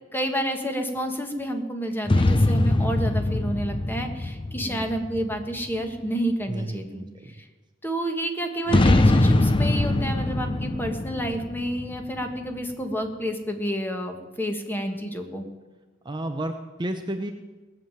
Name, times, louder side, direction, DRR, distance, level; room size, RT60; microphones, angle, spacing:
voice 1, 0.1-7.0 7.4-7.5 7.8-15.4, right 1 dB, 10° left, 5 dB, 1.5 m, -29 dB
sound 1, 2.1-5.8 8.7-12.5, left 2 dB, 25° left, 0.6 m, -22 dB
voice 2, 4.5-4.9 6.5-7.3 16.0-17.3, right 1 dB, 20° right, 6 dB, 0.7 m, -32 dB
18.0 x 7.4 x 9.1 m, 1.2 s
head